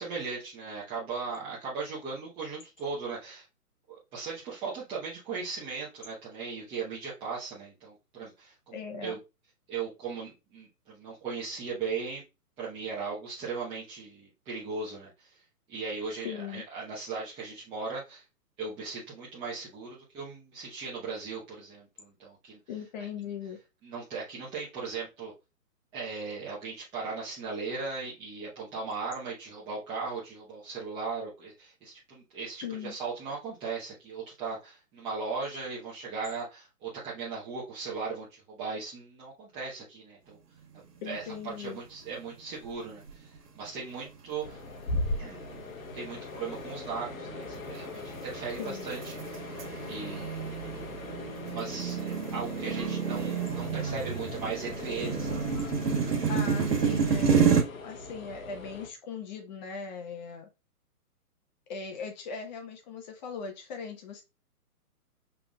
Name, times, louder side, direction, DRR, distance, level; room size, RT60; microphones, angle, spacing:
voice 1, 0.0-3.5 3.9-9.2 9.7-12.2 12.6-15.4 15.7-18.2 18.6-22.6 23.8-25.3 25.9-40.4 41.0-43.3 43.5-44.6 45.2-49.6 49.9-50.7 51.2-55.3, right 4 dB, 10° right, 0.9 m, -38 dB
voice 2, 8.7-9.2 16.2-16.6 22.7-23.6 32.6-33.0 41.0-41.8 48.6-48.9 53.8-53.9 56.3-60.5 61.7-64.2, left 6 dB, 30° left, 1.0 m, -39 dB
sound 1, 41.2-41.7 42.0-42.1 42.9-43.4 43.9-44.1 44.7-57.6, right 6 dB, 90° right, 1.8 m, -30 dB
sound 2, 44.4-58.9, left 3 dB, 60° left, 1.2 m, -40 dB
5.8 x 3.7 x 2.3 m
hypercardioid pair, 145°, 46 cm